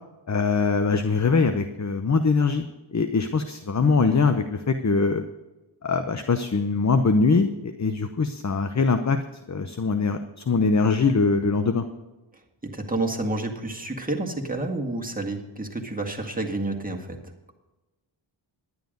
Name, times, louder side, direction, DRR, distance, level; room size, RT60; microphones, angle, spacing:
voice 1, 0.3-5.2 5.8-9.2 9.5-11.8, left 4 dB, 35° left, 8 dB, 0.8 m, -22 dB
voice 2, 12.3-17.2, right 2 dB, 15° right, 1 dB, 2.0 m, -30 dB
11.0 x 9.6 x 5.3 m, 1.1 s
cardioid pair, 55°, 50 cm